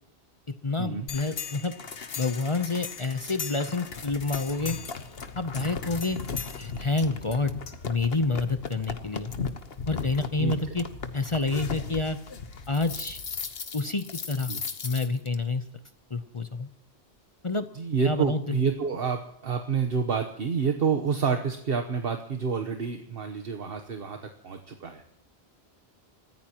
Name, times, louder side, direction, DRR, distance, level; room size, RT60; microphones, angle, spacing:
voice 1, 0.6-1.7 2.2-4.8 5.4-6.2 6.6-7.5 7.8-9.3 9.9-10.8 11.1-12.2 12.7-13.2 13.7-14.5 14.8-15.6 16.1-16.7 17.4-17.6 18.0-18.6, left 3 dB, 30° left, 10 dB, 0.8 m, -28 dB
sound 1, 1.1-15.4, left 5 dB, 65° left, 1.3 m, -37 dB
voice 2, 17.7-25.0, right 6 dB, 60° right, 6 dB, 1.3 m, -28 dB
29.0 x 15.0 x 3.0 m, 0.73 s
omnidirectional pair, 1.1 m